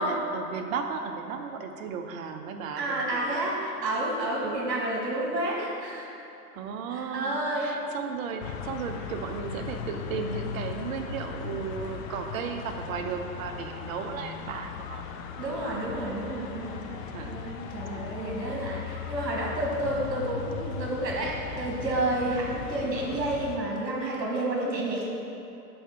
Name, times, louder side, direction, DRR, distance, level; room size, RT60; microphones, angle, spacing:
voice 1, 0.0-3.7 4.4-4.6 6.5-15.2 16.9-17.4 17.8-18.4, right 6 dB, 55° right, 5 dB, 0.8 m, -35 dB
voice 2, 2.8-6.1 6.9-7.9 15.4-25.1, right 1 dB, 80° right, -3 dB, 1.5 m, -30 dB
sound 1, 8.4-23.6, left 7 dB, 55° left, 0.6 m, -38 dB
5.6 x 4.3 x 5.8 m, 2.8 s
hypercardioid pair, 120°, 50 cm